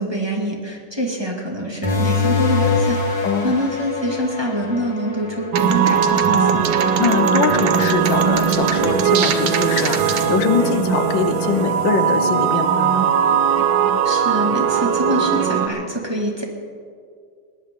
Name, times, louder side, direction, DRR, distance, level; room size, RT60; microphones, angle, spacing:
voice 1, 0.0-6.8 14.0-16.4, right 1 dB, 15° right, 0 dB, 2.0 m, -25 dB
sound 1, 1.8-7.0, left 4 dB, 65° left, 2.8 m, -24 dB
sound 2, 5.5-15.7, right 7 dB, 90° right, 1.8 m, -19 dB
voice 2, 7.0-13.1, left 7 dB, 85° left, 9 dB, 1.7 m, -23 dB
20.5 x 19.0 x 3.7 m, 2.2 s
omnidirectional pair, 2.0 m